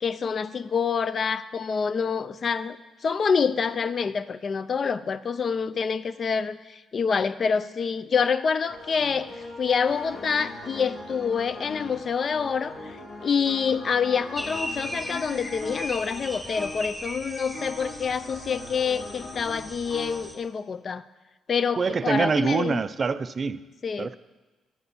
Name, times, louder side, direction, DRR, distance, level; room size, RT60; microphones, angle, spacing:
voice 1, 0.0-2.8 3.0-13.0 13.2-21.0 21.5-22.8 23.8-24.1, left 6 dB, 45° left, 15 dB, 0.3 m, -27 dB
sound 1, 8.7-20.2, left 2 dB, 80° left, 2.7 m, -40 dB
sound 2, 14.4-20.3, equal, 5° left, 1.2 m, -38 dB
voice 2, 21.8-23.6 24.0-24.2, right 5 dB, 40° right, 14 dB, 0.3 m, -25 dB
10.5 x 4.2 x 6.9 m, 1.2 s
cardioid pair, 90°, 0 cm